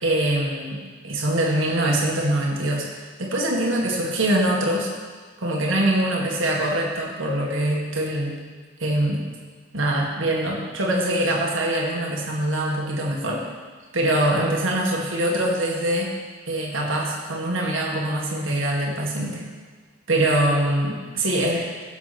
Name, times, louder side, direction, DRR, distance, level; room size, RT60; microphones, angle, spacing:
voice 1, 0.0-2.9 3.2-4.9 5.4-8.4 8.8-9.2 9.7-13.4 13.9-16.1 16.5-19.5 20.1-21.6, right 1 dB, 70° right, -2 dB, 1.9 m, -23 dB
17.0 x 7.2 x 4.3 m, 1.5 s
head